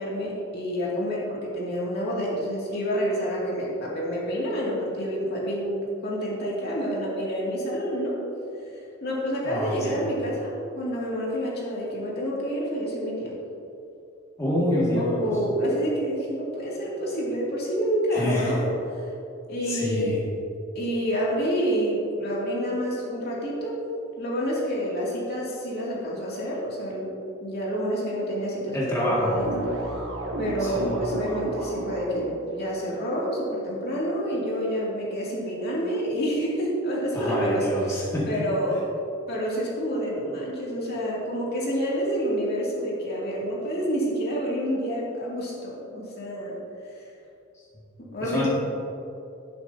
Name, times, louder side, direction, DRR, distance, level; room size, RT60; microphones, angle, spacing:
voice 1, 0.0-8.2 8.7-13.3 14.6-18.6 18.9-19.0 19.5-20.3 20.7-23.8 24.2-27.1 27.4-29.5 30.4-38.9 39.3-46.6 46.9-47.1 48.0-48.5, equal, 55° left, -5 dB, 2.4 m, -28 dB
voice 2, 9.4-10.0 14.4-15.2 18.1-18.6 19.7-20.1 28.7-29.3 30.6-30.9 37.1-38.3 48.2-48.5, left 1 dB, 15° left, -7 dB, 2.0 m, -27 dB
sound 1, 29.2-32.4, right 1 dB, 70° right, 1.5 m, -32 dB
11.0 x 10.5 x 2.7 m, 2.7 s
head